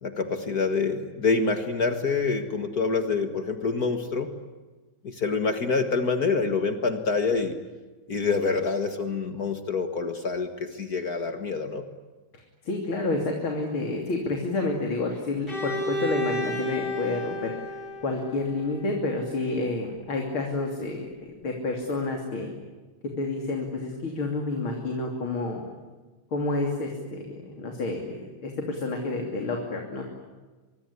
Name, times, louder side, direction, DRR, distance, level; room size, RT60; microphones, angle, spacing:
voice 1, 0.0-4.3 5.0-7.6 8.1-11.8, left 4 dB, 50° left, 7 dB, 2.1 m, -26 dB
voice 2, 12.6-17.6 18.0-22.5 23.2-25.6 26.3-30.0, left 2 dB, 90° left, 2 dB, 3.9 m, -29 dB
Bowed string instrument, 15.5-19.3, left 1 dB, 25° left, 6.7 m, -32 dB
24.5 x 24.5 x 9.8 m, 1.3 s
omnidirectional pair, 2.2 m